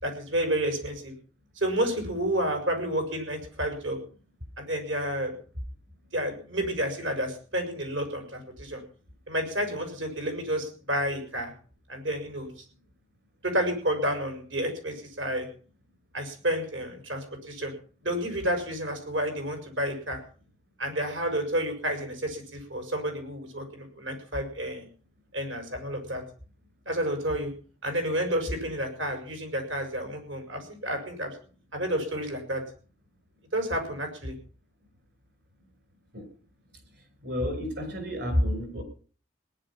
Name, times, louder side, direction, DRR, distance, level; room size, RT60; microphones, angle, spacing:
voice 1, 0.0-1.1 1.6-4.0 4.6-5.3 6.1-8.8 9.3-11.5 11.9-12.5 13.4-15.5 16.1-17.7 18.0-20.2 20.8-24.9 25.3-26.2 26.9-27.5 27.8-31.3 31.7-32.6 33.5-34.3, right 1 dB, 85° right, 5 dB, 6.4 m, -30 dB
voice 2, 37.2-38.8, equal, 60° right, 7 dB, 5.8 m, -29 dB
19.0 x 11.0 x 5.9 m, 0.41 s
head